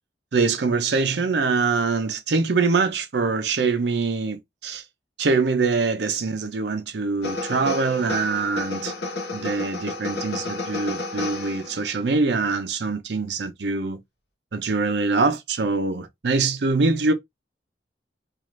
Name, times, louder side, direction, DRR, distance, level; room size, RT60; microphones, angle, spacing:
voice 1, 0.3-4.8 5.2-8.9 9.3-14.0 14.5-17.1, right 4 dB, 70° right, 0.6 m, -24 dB
sound 1, 7.2-12.0, left 3 dB, 75° left, 1.0 m, -31 dB
2.4 x 2.3 x 3.1 m
head